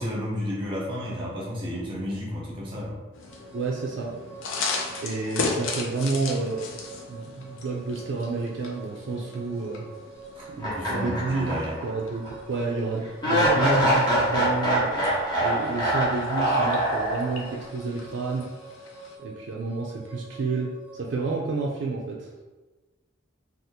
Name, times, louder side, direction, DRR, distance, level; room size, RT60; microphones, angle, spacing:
voice 1, 0.0-3.0 10.3-10.5 10.7-11.8, equal, 25° right, -4 dB, 0.9 m, -32 dB
sound 1, 3.1-19.2, left 3 dB, 85° left, 0.5 m, -37 dB
sound 2, 3.3-21.1, right 3 dB, 10° right, 0.5 m, -46 dB
voice 2, 3.5-4.2 5.0-6.6 7.1-9.9 10.5-15.1 15.4-18.5 19.2-22.4, right 3 dB, 60° right, -2 dB, 0.4 m, -30 dB
sound 3, 10.6-11.9 12.2-12.3 13.2-17.5, right 1 dB, 25° left, 0.8 m, -24 dB
2.7 x 2.4 x 3.6 m, 1.2 s
head